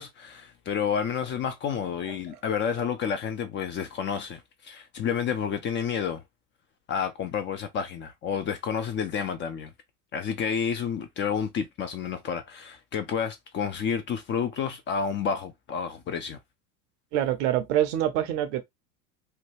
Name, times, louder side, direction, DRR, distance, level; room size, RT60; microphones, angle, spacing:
voice 1, 0.0-6.2 6.9-9.7 10.1-16.4, left 7 dB, 25° left, 0.5 m, -30 dB
voice 2, 17.1-18.6, right 12 dB, 50° right, 0.7 m, -26 dB
2.8 x 2.2 x 3.2 m
figure-of-eight pair, 80°, 45 cm